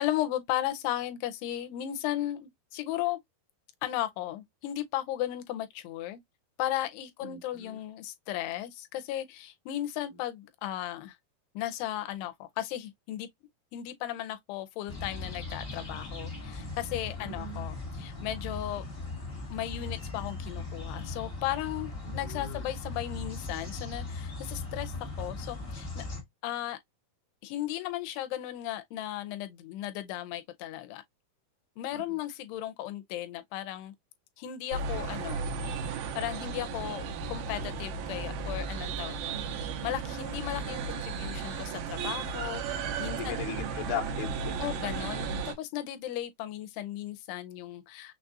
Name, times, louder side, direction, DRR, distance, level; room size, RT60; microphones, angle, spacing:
voice 1, 0.0-3.2 3.8-6.2 6.6-11.2 11.6-13.3 13.7-18.9 19.5-26.1 26.4-26.8 27.4-31.0 31.8-33.9 34.4-35.5 36.2-39.4 39.8-43.4 44.6-48.1, left 13 dB, 85° left, 2.7 m, -35 dB
voice 2, 7.2-7.8 17.2-17.6 22.0-22.7 31.9-32.2 39.3-39.7 43.2-44.8, left 6 dB, 65° left, 2.2 m, -39 dB
sound 1, 14.9-26.2, left 3 dB, 25° left, 1.2 m, -38 dB
sound 2, 34.7-45.6, right 5 dB, 80° right, 2.7 m, -35 dB
6.4 x 2.3 x 2.6 m
omnidirectional pair, 4.7 m